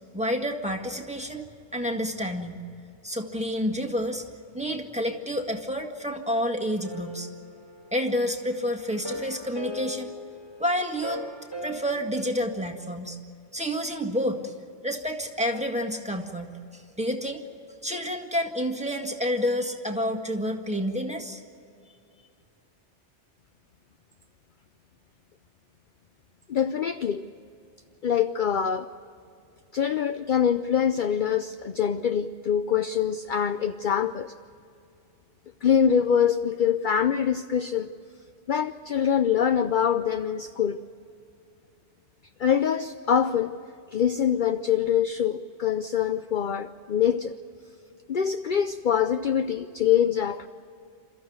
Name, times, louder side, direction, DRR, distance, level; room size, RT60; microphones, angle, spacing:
voice 1, 0.1-2.6 3.0-4.2 4.5-7.3 7.9-10.1 10.6-11.2 11.6-13.2 13.5-14.5 14.8-17.4 17.8-21.4, equal, 5° right, 3 dB, 1.8 m, -29 dB
sound 1, 6.8-8.4 8.9-12.0, left 1 dB, 20° left, 3.1 m, -39 dB
voice 2, 26.5-27.2 28.0-28.9 29.7-34.3 35.6-37.9 38.5-40.8 42.4-43.6 43.9-47.3 48.1-50.5, left 8 dB, 50° left, 10 dB, 0.7 m, -24 dB
28.0 x 14.0 x 9.4 m, 2.5 s
omnidirectional pair, 1.2 m